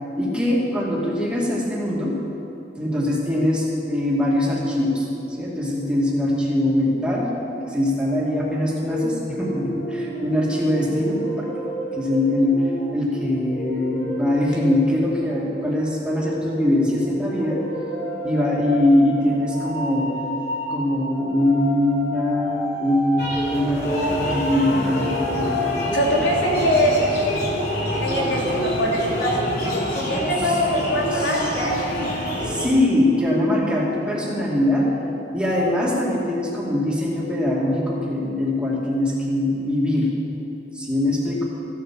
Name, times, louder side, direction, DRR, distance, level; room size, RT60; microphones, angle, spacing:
voice 1, 0.2-2.2 2.8-7.3 7.7-11.5 11.9-17.6 18.2-20.1 20.7-23.2 23.5-25.5 26.2-26.3 28.2-28.3 31.1-31.7 32.4-34.9 35.3-40.1 40.7-41.4, left 1 dB, 5° right, -5 dB, 2.4 m, -22 dB
sound 1, 8.9-27.1, equal, 30° left, 4.2 m, -31 dB
sound 2, 23.2-32.7, equal, 60° left, 3.5 m, -26 dB
voice 2, 25.9-27.0 28.0-32.2, equal, 90° left, -3 dB, 3.1 m, -23 dB
14.5 x 9.5 x 7.6 m, 2.9 s
head